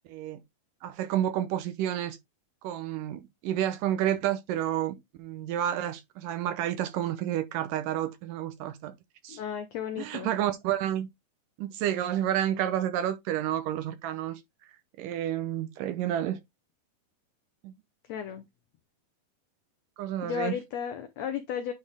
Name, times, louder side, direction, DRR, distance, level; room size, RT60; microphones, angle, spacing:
voice 1, 0.1-0.4 0.8-2.2 2.6-8.9 9.2-9.4 10.0-11.1 11.6-14.4 15.0-16.4 17.6-17.7 20.0-20.5, right 11 dB, 75° right, 2.4 m, -30 dB
voice 2, 9.3-10.3 18.0-18.4 20.2-21.7, left 8 dB, 80° left, 1.5 m, -34 dB
9.6 x 4.3 x 3.4 m
omnidirectional pair, 4.1 m